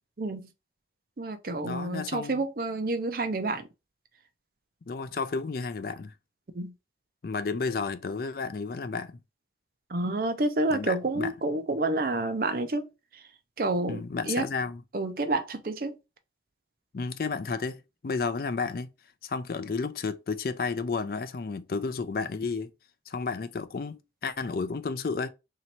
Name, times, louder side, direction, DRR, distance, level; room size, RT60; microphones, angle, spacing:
voice 1, 0.2-0.5 1.2-3.7 6.5-6.7 9.9-12.9 13.1-13.2 13.6-14.5 14.9-15.9, right 2 dB, 50° right, 0.6 m, -29 dB
voice 2, 1.6-2.4 4.9-6.1 7.2-9.1 10.7-11.3 13.9-14.8 16.9-18.9 19.2-22.7 23.1-25.3, left 4 dB, 50° left, 0.4 m, -32 dB
3.1 x 2.8 x 4.2 m
head